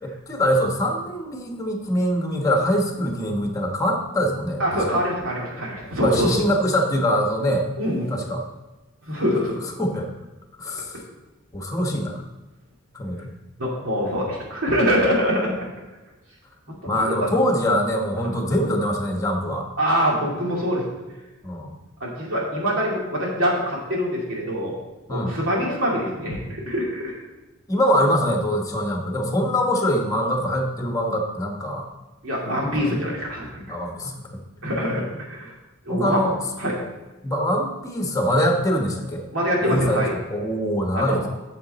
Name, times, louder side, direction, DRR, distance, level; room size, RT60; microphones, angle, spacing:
voice 1, 0.0-5.0 6.0-7.7 8.1-8.4 9.8-10.1 10.6-11.0 11.5-12.2 12.9-13.3 16.8-19.7 21.4-21.7 25.1-25.3 27.7-31.9 32.8-33.0 33.7-34.4 35.9-36.4 37.2-39.2 39.6-40.0 40.3-41.3, equal, 15° left, 2 dB, 1.2 m, -23 dB
voice 2, 4.6-6.3 7.8-8.1 9.1-9.6 13.6-15.5 16.8-17.4 18.2-18.3 19.8-20.9 22.0-24.7 25.1-27.2 32.2-33.8 34.6-35.5 35.9-36.2 36.6-36.7 39.3-40.1 40.9-41.3, equal, 75° right, -3 dB, 2.6 m, -24 dB
8.6 x 6.9 x 4.1 m, 1.1 s
head